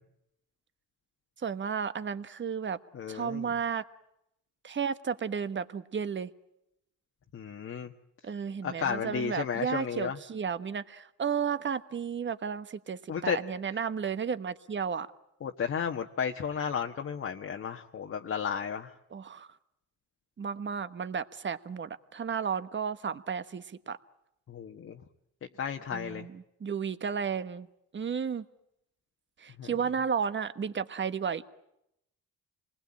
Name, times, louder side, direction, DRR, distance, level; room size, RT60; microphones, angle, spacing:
voice 1, 1.4-2.8 3.1-3.8 4.6-6.3 8.2-15.1 19.1-19.5 20.4-24.0 25.9-27.7 27.9-28.4 29.4-31.4, right 6 dB, 40° right, 12 dB, 1.3 m, -33 dB
voice 2, 2.9-3.5 7.3-7.9 8.6-10.2 13.1-13.4 15.4-18.9 24.5-25.0 25.6-26.3 29.6-29.7, left 7 dB, 50° left, 3 dB, 1.4 m, -33 dB
27.5 x 20.5 x 8.7 m, 0.83 s
cardioid pair, 90°, 30 cm